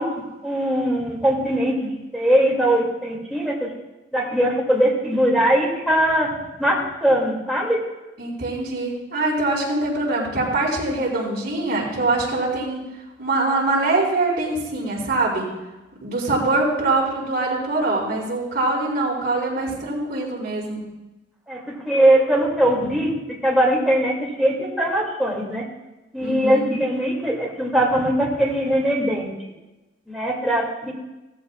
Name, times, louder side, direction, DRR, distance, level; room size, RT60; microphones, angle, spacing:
voice 1, 0.0-3.7 4.1-7.8 21.5-23.2 23.4-25.6 26.1-29.3 30.1-30.9, right 1 dB, ahead, -4 dB, 2.4 m, -21 dB
voice 2, 8.2-12.8 13.2-15.5 16.0-20.8 26.2-26.7, right 2 dB, 55° right, -6 dB, 4.4 m, -23 dB
16.0 x 14.5 x 2.4 m, 1.1 s
head